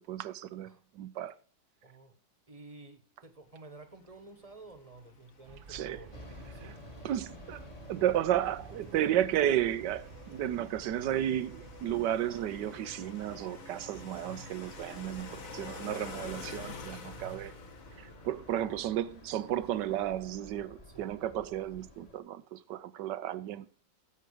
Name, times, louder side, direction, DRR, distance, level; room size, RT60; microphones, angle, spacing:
voice 1, 0.1-1.4 5.7-6.0 7.0-7.6 7.9-17.5 18.0-23.7, right 11 dB, 75° right, 1.3 m, -33 dB
voice 2, 1.8-2.1 2.5-6.9 14.1-14.5 17.0-17.5 20.8-21.1, right 3 dB, 20° right, 1.3 m, -52 dB
sound 1, 3.9-20.1, left 4 dB, 50° left, 1.6 m, -49 dB
sound 2, 5.5-16.6, right 6 dB, 55° right, 0.6 m, -54 dB
sound 3, 6.1-22.2, left 1 dB, 20° left, 1.6 m, -53 dB
11.0 x 7.7 x 4.9 m
omnidirectional pair, 2.0 m